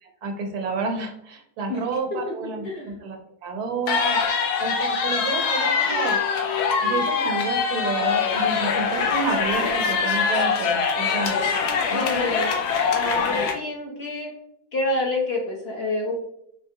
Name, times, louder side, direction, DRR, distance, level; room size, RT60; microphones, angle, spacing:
voice 1, 0.0-4.2 4.6-6.2 6.8-11.4 11.9-12.1, right 4 dB, 85° right, 3 dB, 1.3 m, -30 dB
sound 1, 3.9-13.5, left 5 dB, 85° left, 1.2 m, -23 dB
voice 2, 11.9-12.5 12.9-14.3 14.7-16.1, left 2 dB, 55° left, -1 dB, 0.8 m, -27 dB
4.2 x 3.1 x 2.7 m, 0.73 s
omnidirectional pair, 1.6 m